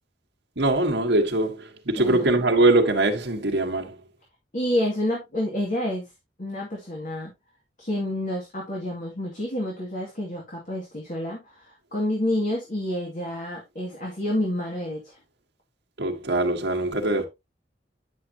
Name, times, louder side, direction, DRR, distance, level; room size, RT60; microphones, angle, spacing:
voice 1, 0.6-4.0 16.0-17.3, right 2 dB, 70° right, 1.6 m, -22 dB
voice 2, 2.0-2.3 4.5-6.1 6.4-7.3 7.8-15.2, left 1 dB, 45° left, 2.4 m, -29 dB
9.9 x 6.4 x 2.9 m
head